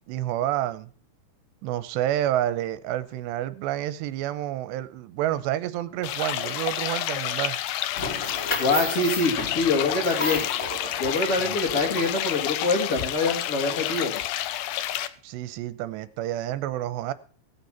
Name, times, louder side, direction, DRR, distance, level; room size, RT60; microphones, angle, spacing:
voice 1, 0.1-0.9 1.6-7.6 11.5-11.6 15.2-17.1, right 13 dB, 80° right, 2.8 m, -29 dB
sound 1, 6.0-15.1, left 12 dB, 80° left, 2.2 m, -30 dB
sound 2, 8.0-12.7, left 2 dB, 25° left, 1.9 m, -33 dB
voice 2, 8.6-10.5 11.0-14.1, left 3 dB, 45° left, 2.1 m, -25 dB
17.0 x 8.2 x 5.8 m
omnidirectional pair, 5.1 m